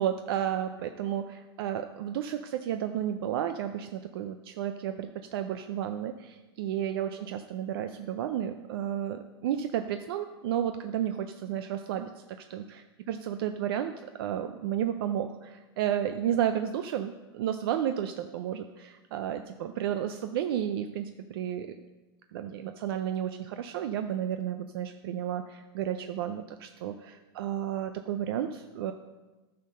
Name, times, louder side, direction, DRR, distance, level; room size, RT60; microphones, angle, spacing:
voice 1, 0.0-12.1 12.5-12.6 13.1-13.9 14.2-21.7 22.3-28.9, right 10 dB, 65° right, 8 dB, 0.6 m, -32 dB
10.5 x 6.6 x 5.3 m, 1.2 s
hypercardioid pair, 125°, 13 cm